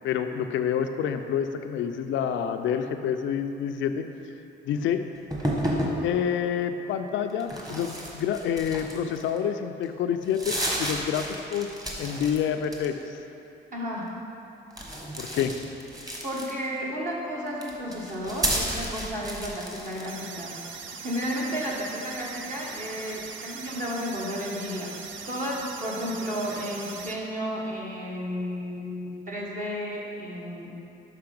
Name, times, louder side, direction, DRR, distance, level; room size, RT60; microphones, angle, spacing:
voice 1, 0.0-4.1 4.7-5.0 6.0-11.7 12.0-13.0 15.2-15.5, left 8 dB, 75° left, 7 dB, 0.4 m, -28 dB
sound 1, 5.3-6.0 7.4-9.4 9.8-9.9 10.2-12.4 12.6-13.2 14.7-16.8 17.5-20.1, equal, 20° right, 1.3 m, -31 dB
voice 2, 13.7-14.1 16.2-20.6 21.0-25.0 25.3-30.7, equal, 40° right, -4 dB, 1.2 m, -32 dB
sound 2, 20.1-27.1, right 5 dB, 75° right, 0.6 m, -40 dB
5.8 x 5.5 x 5.2 m, 2.8 s
cardioid pair, 90°, 20 cm